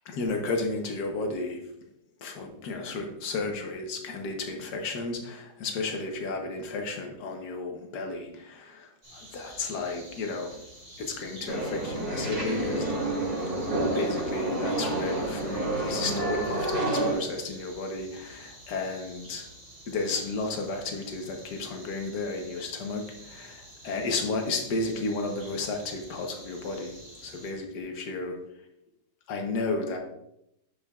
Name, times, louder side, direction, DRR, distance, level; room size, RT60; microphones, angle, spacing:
voice 1, 0.1-1.6 2.2-10.6 11.0-13.0 13.9-19.5 19.9-26.9 27.2-28.4 29.3-30.0, left 3 dB, 70° left, 3 dB, 1.6 m, -33 dB
sound 1, 9.0-27.5, right 1 dB, 20° right, 2.1 m, -49 dB
sound 2, 11.5-17.1, right 1 dB, 60° right, 2.7 m, -29 dB
11.0 x 5.1 x 2.4 m, 0.79 s
omnidirectional pair, 1.9 m